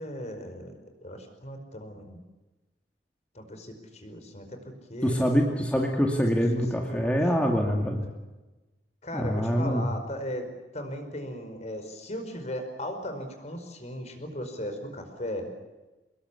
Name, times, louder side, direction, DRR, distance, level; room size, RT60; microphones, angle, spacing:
voice 1, 0.0-2.2 3.3-5.5 6.9-7.9 9.0-10.5 10.7-15.5, equal, 40° left, 6 dB, 5.0 m, -37 dB
voice 2, 5.0-8.1 9.1-9.8, equal, 10° left, 1 dB, 2.4 m, -25 dB
25.5 x 21.0 x 8.4 m, 1.1 s
head